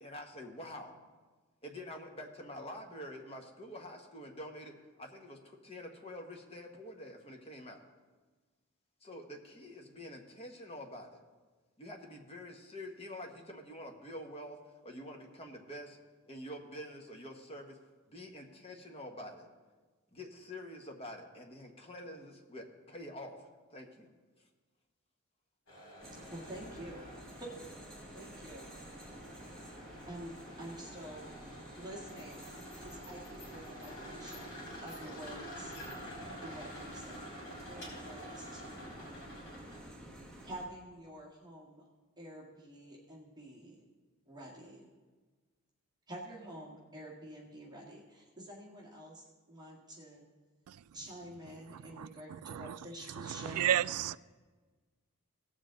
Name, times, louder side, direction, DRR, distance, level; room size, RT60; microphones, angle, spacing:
voice 1, 0.0-1.0 1.6-7.8 9.0-11.2 11.8-14.6 14.8-16.0 16.3-17.8 18.1-19.5 20.1-24.1, left 1 dB, 25° left, 2 dB, 1.2 m, -47 dB
sound 1, 25.7-40.0, equal, 65° left, 4.2 m, -49 dB
sound 2, 26.0-40.7, right 1 dB, 5° left, 1.5 m, -51 dB
voice 2, 26.3-27.1 27.4-27.8 28.1-28.7 30.1-31.3 31.8-32.5 32.8-35.7 36.4-37.4 37.7-39.2 40.4-41.8 42.2-43.8 44.3-44.9 46.1-50.2 50.9-53.8, right 1 dB, 20° right, -4 dB, 1.8 m, -48 dB
voice 3, 52.5-52.8 53.2-54.2, right 10 dB, 85° right, 18 dB, 0.3 m, -32 dB
18.0 x 7.3 x 3.9 m, 1.4 s
head